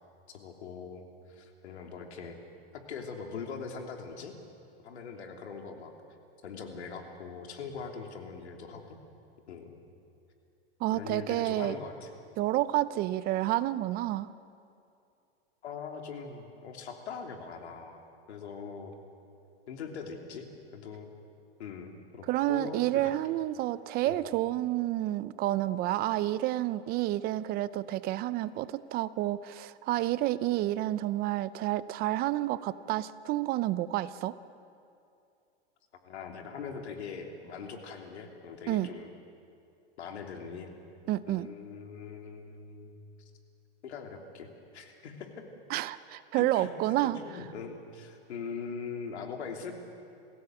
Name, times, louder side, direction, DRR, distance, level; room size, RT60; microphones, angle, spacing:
voice 1, 0.3-2.4 2.7-4.3 4.8-5.9 6.4-9.0 9.5-9.8 10.9-12.1 15.6-18.0 18.3-19.0 19.7-20.5 20.7-21.1 21.6-23.1 24.0-24.2 36.0-39.1 40.0-40.7 41.3-42.9 43.8-45.4 46.4-46.7 47.1-49.7, left 5 dB, 90° left, 3 dB, 3.3 m, -41 dB
voice 2, 10.8-11.8 12.4-14.3 22.3-34.4 38.7-38.9 41.1-41.5 45.7-47.2, right 15 dB, 30° right, 16 dB, 0.5 m, -29 dB
27.0 x 16.5 x 7.9 m, 2.5 s
supercardioid pair, 140°, 32 cm